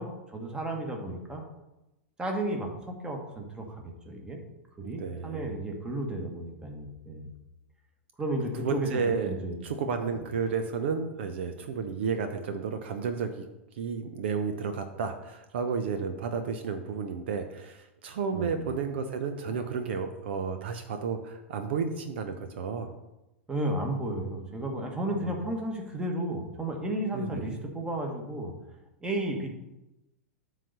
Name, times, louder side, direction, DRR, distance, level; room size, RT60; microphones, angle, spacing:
voice 1, 0.0-1.4 2.2-4.4 4.8-7.3 8.2-9.6 18.3-18.6 23.5-28.5 29.0-29.5, right 1 dB, 10° right, 2 dB, 1.5 m, -33 dB
voice 2, 4.8-5.5 8.6-13.5 13.7-22.9 25.1-25.3 27.1-27.6, right 5 dB, 55° right, 7 dB, 0.7 m, -32 dB
7.4 x 4.0 x 6.7 m, 0.96 s
figure-of-eight pair, 95°, 7 cm